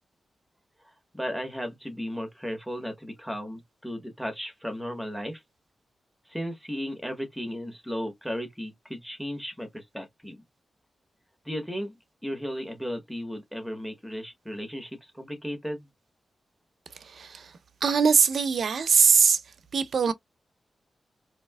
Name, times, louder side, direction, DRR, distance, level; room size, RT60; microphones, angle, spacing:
voice 1, 1.1-5.4 6.3-10.4 11.4-15.9, equal, ahead, 1.3 m, -35 dB
voice 2, 16.9-20.1, right 6 dB, 65° right, 0.6 m, -23 dB
4.2 x 2.8 x 2.2 m
wide cardioid pair, 130°, 0 cm